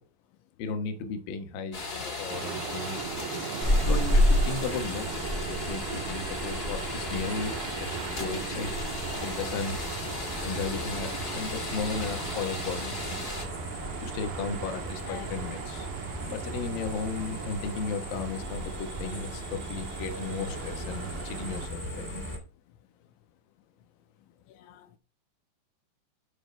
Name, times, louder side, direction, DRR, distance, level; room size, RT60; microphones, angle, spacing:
voice 1, 0.6-1.8 2.2-3.0 3.8-8.7 9.2-9.8 10.4-12.9 14.0-15.9 16.2-22.2, left 5 dB, 65° left, 2.5 m, -35 dB
sound 1, 1.7-13.4, left 3 dB, 35° left, 1.5 m, -37 dB
sound 2, 2.3-21.7, right 10 dB, 75° right, 2.6 m, -39 dB
sound 3, 3.6-22.4, equal, 10° left, 0.8 m, -33 dB
voice 2, 24.5-25.0, left 10 dB, 85° left, 3.0 m, -44 dB
12.0 x 6.2 x 3.4 m
omnidirectional pair, 5.4 m